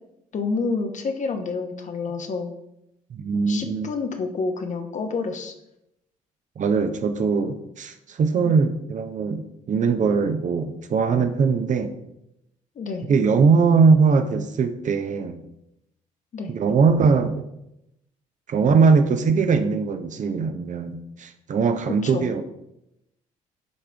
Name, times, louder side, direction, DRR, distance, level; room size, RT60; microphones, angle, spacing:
voice 1, 0.3-2.6 3.3-5.5 8.4-8.7 12.7-13.1 16.3-16.5 21.9-22.3, left 4 dB, 45° left, 5 dB, 1.1 m, -29 dB
voice 2, 3.1-3.9 6.6-11.9 13.1-15.4 16.5-17.4 18.5-22.5, right 5 dB, 45° right, 8 dB, 0.8 m, -21 dB
10.5 x 3.7 x 3.4 m, 0.84 s
hypercardioid pair, 55°, 17 cm